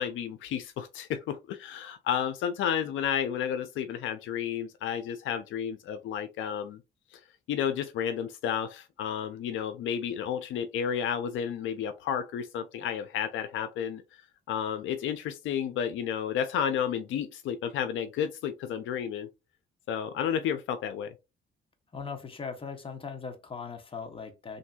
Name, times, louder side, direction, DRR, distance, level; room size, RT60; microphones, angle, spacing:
voice 1, 0.0-6.8 7.1-7.2 7.5-14.0 14.5-19.3 19.9-21.1, left 8 dB, 80° left, 0.5 m, -31 dB
voice 2, 21.9-24.6, left 5 dB, 25° left, 0.8 m, -39 dB
3.3 x 2.6 x 2.3 m
cardioid pair, 90°, 20 cm